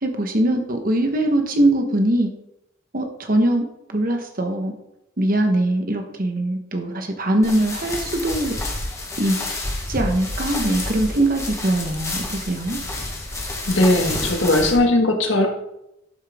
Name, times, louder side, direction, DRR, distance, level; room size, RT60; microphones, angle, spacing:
voice 1, 0.0-2.3 2.9-3.6 3.9-4.7 5.2-8.6 9.2-9.4 9.9-12.8, right 1 dB, 45° right, 4 dB, 1.2 m, -21 dB
sound 1, 7.4-14.8, left 2 dB, 15° left, 1.3 m, -29 dB
voice 2, 13.7-15.5, left 1 dB, 75° left, 3 dB, 1.6 m, -18 dB
12.0 x 5.6 x 3.6 m, 0.84 s
head